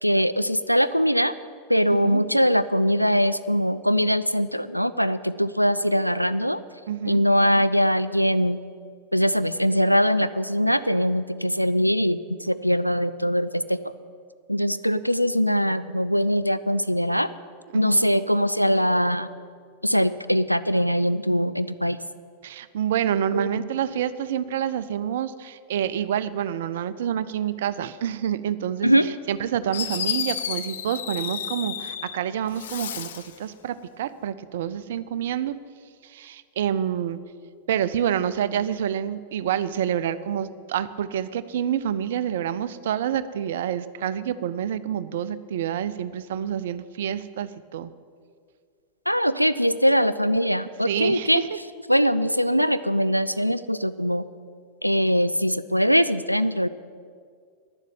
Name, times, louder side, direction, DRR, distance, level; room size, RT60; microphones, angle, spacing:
voice 1, 0.0-1.3 1.7-6.6 7.0-8.6 9.1-13.8 14.5-17.3 17.7-19.3 19.8-22.0 23.3-23.7 28.8-29.1 49.1-51.4 51.9-54.3 54.8-56.7, equal, 90° left, 13 dB, 0.3 m, -22 dB
voice 2, 1.9-2.2 6.9-7.2 17.7-18.1 22.4-28.9 29.3-35.6 36.0-37.2 37.7-47.9 50.8-51.5, right 9 dB, 60° right, 15 dB, 0.5 m, -28 dB
Fireworks, 29.3-29.4 29.7-32.2 32.5-33.4, left 8 dB, 60° left, 0.7 m, -31 dB
10.5 x 7.4 x 9.1 m, 2.1 s
figure-of-eight pair, 90°, 0 cm